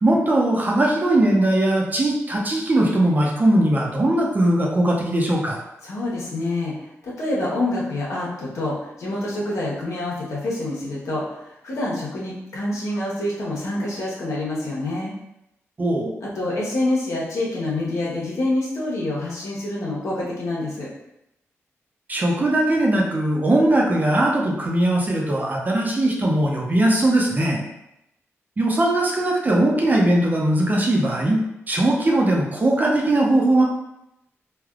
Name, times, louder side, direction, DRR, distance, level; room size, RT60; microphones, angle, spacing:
voice 1, 0.0-5.6 15.8-16.1 22.1-27.6 28.6-33.6, right 1 dB, 35° right, -1 dB, 0.6 m, -20 dB
voice 2, 5.8-6.7 7.0-15.1 16.2-20.9, left 2 dB, 85° left, -5 dB, 0.9 m, -26 dB
3.3 x 2.3 x 2.4 m, 0.84 s
cardioid pair, 90°, 5 cm